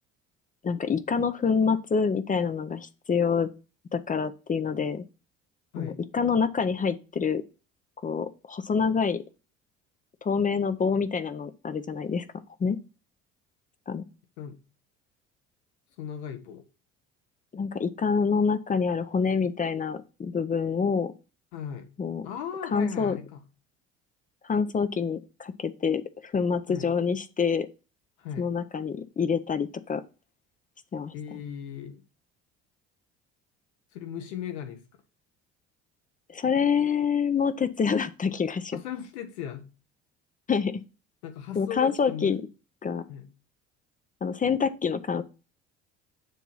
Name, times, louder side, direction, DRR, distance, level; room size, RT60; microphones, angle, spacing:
voice 1, 0.6-3.5 3.9-5.0 5.8-7.4 8.0-9.2 10.2-12.2 12.6-12.8 13.9-14.0 17.5-21.1 22.0-22.3 22.7-23.2 24.4-27.7 28.4-30.0 30.9-31.1 36.3-38.8 40.5-40.7 41.5-42.4 42.8-43.0 44.2-45.2, left 6 dB, 25° left, 12 dB, 0.6 m, -26 dB
voice 2, 16.0-16.6 21.5-21.9 22.2-23.4 26.7-26.9 28.2-28.5 31.1-32.0 33.9-34.8 38.7-39.7 41.2-42.4 43.1-43.3, left 9 dB, 80° left, 8 dB, 1.2 m, -37 dB
7.1 x 2.9 x 5.5 m, 0.32 s
hypercardioid pair, 65°, 33 cm